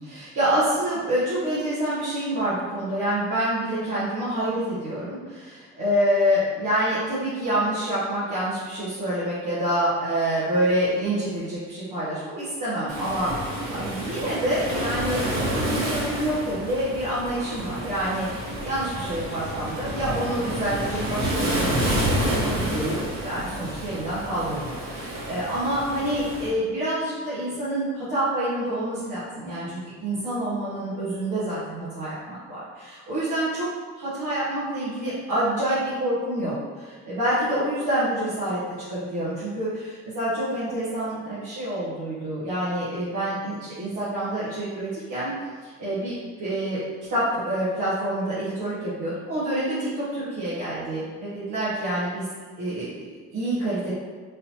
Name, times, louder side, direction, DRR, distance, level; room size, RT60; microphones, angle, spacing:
voice 1, 0.0-33.7 33.9-38.6 38.9-45.3 45.6-46.8 47.1-52.2 52.6-53.9, right 1 dB, 85° right, -12 dB, 1.2 m, -27 dB
Waves surf, 12.9-26.5, right 1 dB, 55° right, 1.3 m, -29 dB
4.0 x 2.7 x 2.8 m, 1.5 s
cardioid pair, 90°, 30 cm